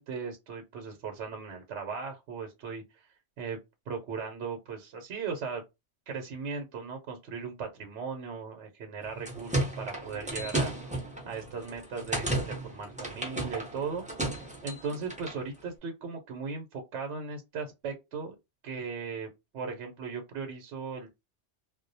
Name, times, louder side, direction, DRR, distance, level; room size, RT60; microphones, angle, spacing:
voice 1, 0.0-3.1 3.4-3.6 3.9-5.6 6.1-11.0 11.3-14.0 14.6-18.3 18.6-21.2, right 5 dB, 75° right, 0.9 m, -38 dB
sound 1, 9.0-15.4, right 1 dB, 10° right, 0.6 m, -34 dB
2.3 x 2.1 x 2.6 m
omnidirectional pair, 1.2 m